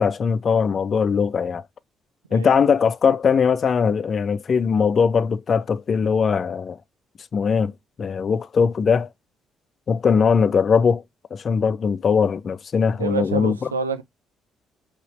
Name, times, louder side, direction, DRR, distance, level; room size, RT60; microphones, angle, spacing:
voice 1, 0.0-1.6 2.3-6.8 7.3-7.7 8.0-9.1 9.9-11.0 11.3-13.7, left 6 dB, 45° left, 0.4 m, -20 dB
voice 2, 13.0-14.0, right 5 dB, 90° right, 0.3 m, -27 dB
3.9 x 2.8 x 4.1 m
figure-of-eight pair, 45°, 0 cm